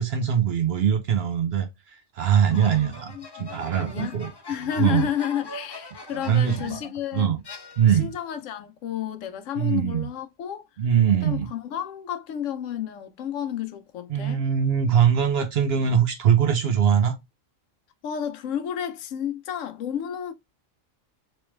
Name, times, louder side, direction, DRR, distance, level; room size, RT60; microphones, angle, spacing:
voice 1, 0.0-1.7 2.2-4.3 4.8-5.1 6.2-6.8 7.1-7.4 7.8-8.1 9.6-10.1 10.8-11.5 14.1-17.2, right 8 dB, 60° right, 0.8 m, -22 dB
voice 2, 2.5-3.5 3.8-4.2 4.5-7.4 7.9-10.7 11.2-14.4 18.0-20.3, left 9 dB, 75° left, 0.9 m, -31 dB
sound 1, 2.5-6.9 7.4-8.2, left 2 dB, 40° left, 0.3 m, -42 dB
3.1 x 3.1 x 3.0 m
omnidirectional pair, 1.4 m